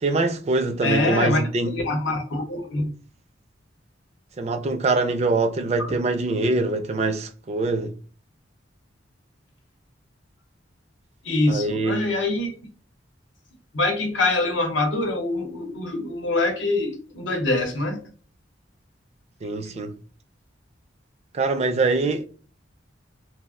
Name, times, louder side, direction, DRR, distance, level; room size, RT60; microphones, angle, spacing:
voice 1, 0.0-1.8 4.4-7.9 11.5-12.0 19.4-19.9 21.3-22.3, right 3 dB, 35° right, 0.4 m, -24 dB
voice 2, 0.8-1.4 1.7-2.9 5.8-6.0 11.2-12.5 13.7-18.0, left 2 dB, 75° left, 0.8 m, -24 dB
2.4 x 2.0 x 3.5 m
head